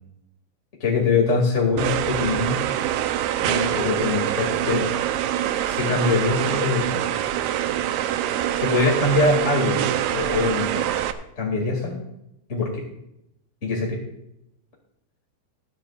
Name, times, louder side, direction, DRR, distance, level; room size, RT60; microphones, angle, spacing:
voice 1, 0.8-2.6 3.4-4.9 5.6-7.0 8.5-9.8 10.1-10.9 11.4-12.0 12.5-12.8 13.6-14.0, left 3 dB, 25° left, -1 dB, 1.8 m, -23 dB
sound 1, 1.8-11.1, right 11 dB, 85° right, 2.1 m, -25 dB
26.0 x 8.8 x 2.5 m, 0.82 s
omnidirectional pair, 5.1 m